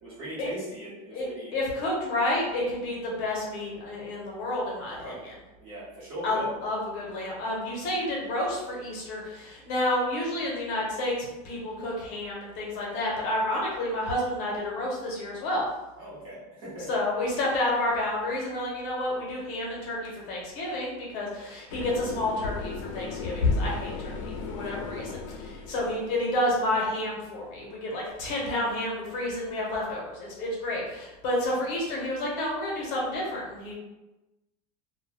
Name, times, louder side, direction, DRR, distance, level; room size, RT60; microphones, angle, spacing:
voice 1, 0.0-1.5 4.9-5.2 5.6-6.5 16.0-16.9 24.6-24.7 24.9-25.2, right 1 dB, 30° right, -8 dB, 0.9 m, -40 dB
voice 2, 1.1-5.3 6.2-15.6 16.9-25.1 25.5-33.7, left 1 dB, 50° left, -3 dB, 0.8 m, -30 dB
sound 1, 21.7-26.3, left 3 dB, 80° left, 0.4 m, -32 dB
2.1 x 2.1 x 3.2 m, 1.0 s
supercardioid pair, 170°, 16 cm